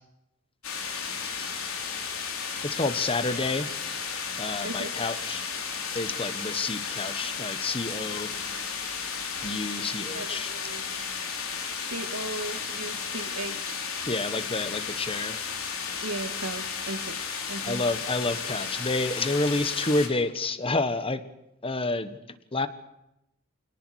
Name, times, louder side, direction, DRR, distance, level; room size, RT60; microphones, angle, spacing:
sound 1, 0.6-20.1, left 6 dB, 70° left, 4.2 m, -34 dB
voice 1, 2.6-3.7 4.4-5.4 5.9-8.3 9.4-10.5 14.1-15.4 17.6-21.2 21.6-22.2 22.5-22.7, left 2 dB, 25° left, 12 dB, 1.4 m, -29 dB
voice 2, 4.6-4.9 10.1-10.9 11.9-13.8 16.0-17.2 17.5-17.8, right 2 dB, 85° right, 6 dB, 2.7 m, -36 dB
26.5 x 18.5 x 6.5 m, 0.84 s
head